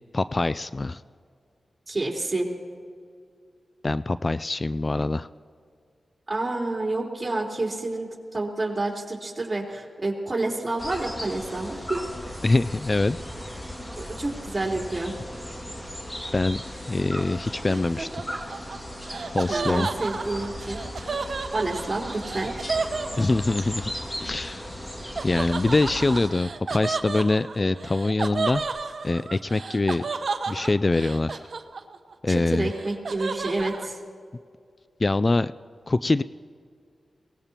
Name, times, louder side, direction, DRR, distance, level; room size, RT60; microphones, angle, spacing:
voice 1, 0.1-1.0 3.8-5.3 12.4-13.2 16.3-18.2 19.3-19.9 23.2-23.9 24.2-24.7 25.2-28.6 29.0-30.0 30.5-31.5 32.2-32.7 35.0-35.5 35.9-36.2, left 2 dB, 40° left, 15 dB, 0.3 m, -24 dB
voice 2, 1.9-2.5 6.3-12.0 13.9-15.2 19.5-20.8 21.5-22.5 32.3-34.0, right 2 dB, 35° right, -2 dB, 3.7 m, -29 dB
sound 1, 10.8-26.3, equal, 20° left, 2.2 m, -37 dB
Laughter, 17.7-23.7 25.2-32.1 32.4-33.9, right 4 dB, 65° right, 0.9 m, -32 dB
22.0 x 18.5 x 2.9 m, 2.2 s
cardioid pair, 45°, 0 cm